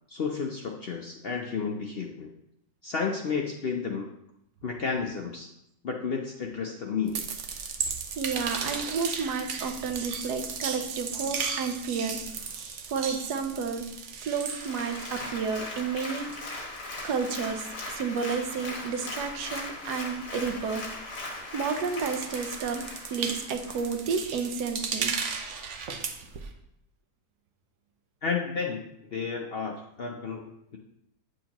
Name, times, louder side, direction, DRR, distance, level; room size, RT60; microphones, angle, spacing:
voice 1, 0.1-2.3 2.8-4.1 4.6-5.5 5.8-7.2 28.2-30.8, left 5 dB, 55° left, 1 dB, 0.7 m, -32 dB
sound 1, 7.1-16.0 16.3-21.3 21.6-26.5, right 6 dB, 55° right, 0.9 m, -36 dB
voice 2, 8.2-12.5 12.9-13.9 14.2-16.3 17.0-20.9 21.5-25.2, right 5 dB, 80° right, 7 dB, 1.3 m, -31 dB
Applause, 14.4-24.2 24.6-24.7, left 2 dB, 70° left, 2.0 m, -39 dB
9.0 x 6.4 x 2.9 m, 0.79 s
omnidirectional pair, 1.7 m